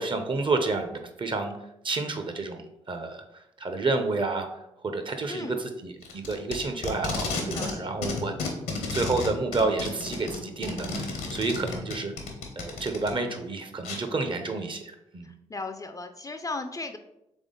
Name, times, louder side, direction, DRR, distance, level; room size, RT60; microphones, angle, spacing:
voice 1, 0.0-1.5 1.8-3.2 3.6-4.5 4.8-8.3 8.9-12.1 12.6-15.3, right 3 dB, 35° right, 6 dB, 0.7 m, -30 dB
Packing tape duct tape, 6.0-7.8 8.0-13.1 13.8-14.0, left 3 dB, 75° left, 0.9 m, -32 dB
voice 2, 7.5-7.9 15.2-17.0, left 3 dB, 25° left, 7 dB, 0.4 m, -36 dB
3.6 x 3.4 x 3.7 m, 0.86 s
hypercardioid pair, 40°, 14 cm